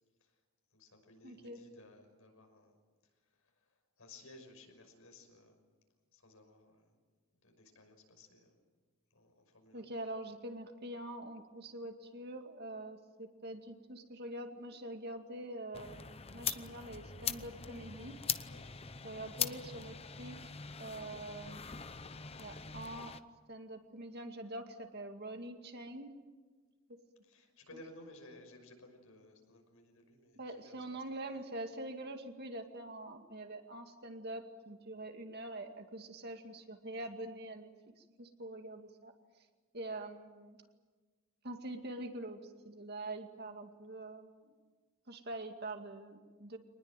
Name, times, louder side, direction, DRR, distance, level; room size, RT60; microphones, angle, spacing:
voice 1, 0.7-2.8 3.3-5.6 6.1-7.0 7.4-8.6 9.1-9.9 18.5-18.6 27.3-31.0 31.3-31.4, left 2 dB, 75° left, 4 dB, 6.0 m, -58 dB
voice 2, 1.2-1.6 9.7-18.2 19.0-20.5 20.8-21.6 22.4-23.2 23.5-26.2 27.7-27.8 30.4-37.7 38.0-39.1 39.7-40.6 41.4-44.6 45.1-46.6, right 1 dB, 50° right, 5 dB, 2.3 m, -45 dB
sound 1, 15.7-23.2, left 8 dB, 30° left, 0.8 m, -41 dB
25.0 x 20.0 x 9.2 m, 1.4 s
head